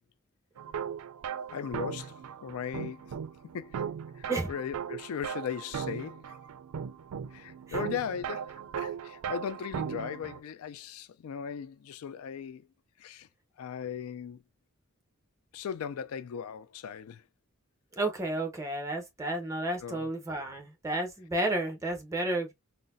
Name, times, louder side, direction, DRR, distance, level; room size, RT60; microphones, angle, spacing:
sound 1, 0.6-10.4, right 7 dB, 85° right, 0.4 m, -38 dB
voice 1, 1.5-3.1 3.5-3.8 4.1-6.4 7.3-12.7 13.0-13.3 13.6-14.4 15.5-17.2 19.8-20.1, left 7 dB, 85° left, 0.3 m, -38 dB
voice 2, 18.0-22.5, right 1 dB, 15° right, 0.8 m, -32 dB
3.9 x 2.1 x 2.5 m
head